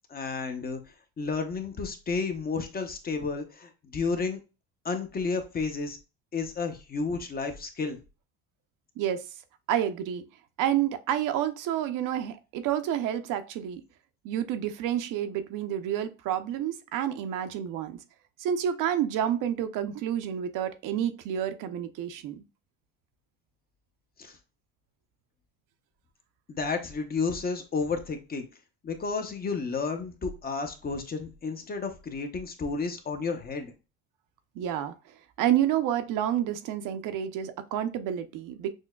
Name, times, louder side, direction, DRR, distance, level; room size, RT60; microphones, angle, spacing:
voice 1, 0.1-0.8 1.2-4.4 4.8-6.0 6.3-8.0 24.2-24.4 26.5-28.5 28.8-33.7, left 4 dB, 25° left, 0.6 m, -31 dB
voice 2, 9.7-10.2 10.6-13.8 14.2-18.0 18.4-22.4 34.6-34.9 35.4-38.7, right 10 dB, 55° right, 0.6 m, -29 dB
6.2 x 2.1 x 2.2 m
supercardioid pair, 110°, 37 cm